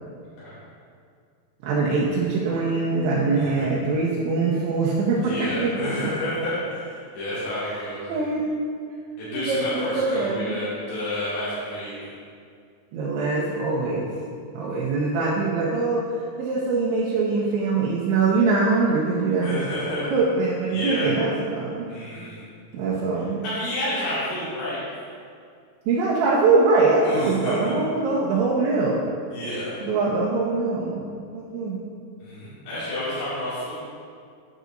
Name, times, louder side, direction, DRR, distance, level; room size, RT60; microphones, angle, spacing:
voice 1, 1.6-6.1 7.7-7.8 8.1-8.6 9.3-10.6 12.9-14.1 14.5-16.0 16.4-19.6 20.1-21.9 22.7-23.5 25.9-29.0 29.8-31.9, right 3 dB, 85° right, -5 dB, 3.1 m, -23 dB
voice 2, 3.3-3.7 5.2-8.1 9.2-12.0 14.7-15.0 19.4-20.0 20.7-21.1 21.9-22.4 23.4-24.8 27.0-27.6 29.3-29.8 32.2-33.7, left 1 dB, 65° left, -13 dB, 4.2 m, -30 dB
9.2 x 9.1 x 2.6 m, 2.3 s
omnidirectional pair, 5.0 m